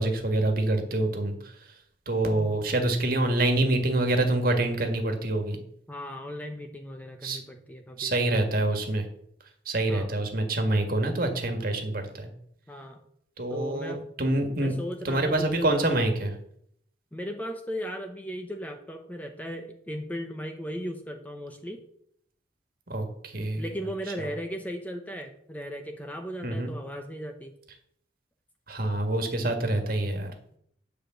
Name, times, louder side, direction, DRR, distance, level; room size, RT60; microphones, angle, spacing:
voice 1, 0.0-1.3 2.1-5.6 7.2-7.4 8.0-9.0 9.7-12.3 13.4-14.7 15.0-16.3 22.9-23.7 26.4-26.7 28.7-30.3, right 2 dB, 50° right, 5 dB, 1.7 m, -26 dB
voice 2, 5.9-8.4 9.9-10.1 12.7-13.0 13.5-14.1 14.6-15.9 17.1-21.8 23.6-27.5, equal, 10° left, 5 dB, 0.7 m, -37 dB
9.6 x 4.9 x 7.6 m, 0.70 s
head